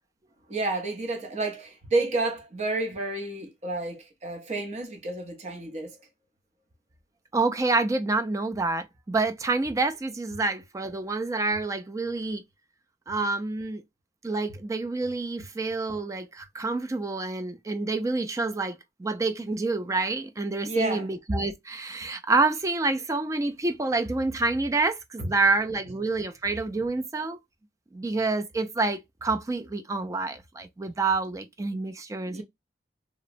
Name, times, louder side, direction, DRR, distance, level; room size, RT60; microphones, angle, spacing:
voice 1, 0.5-6.0 20.6-21.1 25.2-25.3 32.3-32.4, right 2 dB, 40° right, 0.7 m, -30 dB
voice 2, 7.3-12.4 13.1-13.8 14.2-27.4 27.9-32.4, right 3 dB, 20° right, 0.3 m, -28 dB
2.8 x 2.1 x 2.5 m
head